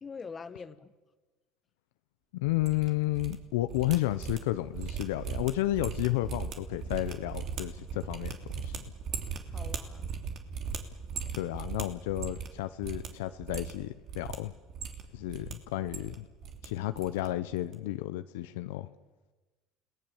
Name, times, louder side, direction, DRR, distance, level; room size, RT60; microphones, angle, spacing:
voice 1, 0.0-0.9 9.5-10.1, left 5 dB, 30° left, 12 dB, 1.6 m, -44 dB
voice 2, 2.3-8.4 8.6-8.8 11.3-14.5 15.1-16.3 16.6-18.9, left 16 dB, 85° left, 11 dB, 0.8 m, -32 dB
sound 1, 2.5-3.4 3.6-12.6 12.8-13.1 13.4-14.4 14.7-15.5 15.8-16.7 16.9-17.3 17.5-17.7, right 6 dB, 55° right, 3.0 m, -38 dB
29.5 x 18.5 x 7.2 m, 1.2 s
supercardioid pair, 85°, 0 cm